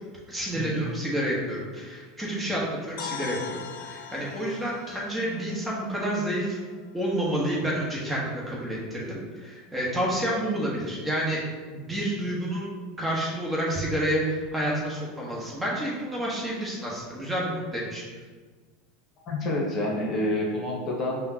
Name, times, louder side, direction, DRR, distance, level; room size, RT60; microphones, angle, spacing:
voice 1, 0.3-6.6 6.9-11.4 11.7-18.0, right 1 dB, 15° right, -4 dB, 1.2 m, -29 dB
sound 1, 3.0-6.9, left 7 dB, 70° left, 0.4 m, -41 dB
voice 2, 19.3-21.3, left 1 dB, 40° left, -2 dB, 0.9 m, -28 dB
5.5 x 2.2 x 2.8 m, 1.4 s
hypercardioid pair, 90°, 0 cm